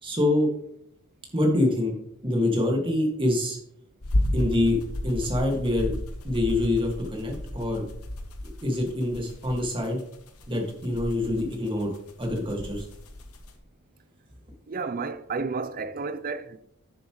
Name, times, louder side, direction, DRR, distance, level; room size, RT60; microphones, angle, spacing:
voice 1, 0.0-0.5 1.3-1.9 2.2-3.6 4.3-6.0 6.2-7.8 8.6-10.0 10.5-11.9 12.2-12.9, left 1 dB, 25° right, 2.0 m, -25 dB
sound 1, 4.0-13.6, left 1 dB, 80° left, 1.2 m, -33 dB
voice 2, 14.7-16.6, right 4 dB, 40° right, 0.5 m, -31 dB
9.7 x 7.2 x 3.1 m
head